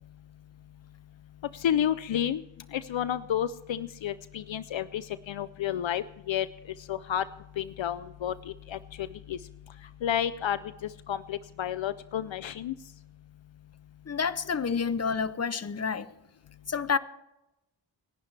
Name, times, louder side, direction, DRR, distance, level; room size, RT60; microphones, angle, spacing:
voice 1, 1.6-2.4 2.7-6.5 6.9-7.2 7.6-8.3 8.7-9.4 10.0-10.6 11.1-12.7, left 10 dB, 75° left, 0.6 m, -30 dB
voice 2, 14.1-16.1 16.7-17.0, left 6 dB, 35° left, 0.7 m, -29 dB
28.5 x 11.0 x 3.3 m
wide cardioid pair, 80°, 46 cm